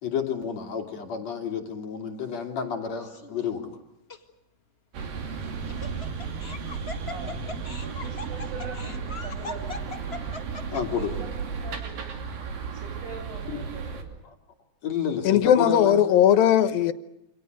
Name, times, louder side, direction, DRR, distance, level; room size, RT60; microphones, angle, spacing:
voice 1, 0.0-3.7 10.7-11.1 13.5-13.6 14.3-14.4 14.8-16.0, left 7 dB, 50° left, 3.6 m, -30 dB
Laughter, 3.0-3.5 4.1-4.2 5.4-11.0, left 3 dB, 25° left, 1.4 m, -39 dB
sound 1, 4.9-14.0, right 5 dB, 80° right, 4.6 m, -34 dB
voice 2, 7.0-10.0 10.9-12.1 12.7-14.1, right 3 dB, 60° right, 9.2 m, -43 dB
voice 3, 15.2-16.9, left 10 dB, 90° left, 3.0 m, -18 dB
28.0 x 26.5 x 6.6 m
omnidirectional pair, 4.0 m